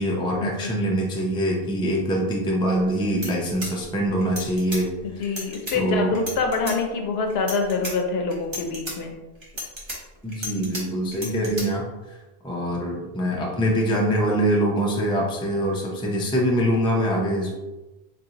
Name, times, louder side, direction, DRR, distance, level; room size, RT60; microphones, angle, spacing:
voice 1, 0.0-4.9 5.7-6.1 10.2-11.8 12.4-17.5, equal, 10° left, -2 dB, 0.4 m, -24 dB
sound 1, 2.8-2.9 3.1-4.8 5.2-5.7 6.1-6.8 7.3-7.9 8.3-8.9 9.4-10.8 11.1-11.6, equal, 30° right, 0.9 m, -33 dB
voice 2, 5.0-9.1, left 4 dB, 75° left, 3 dB, 0.8 m, -26 dB
3.8 x 2.7 x 2.8 m, 1.1 s
omnidirectional pair, 1.1 m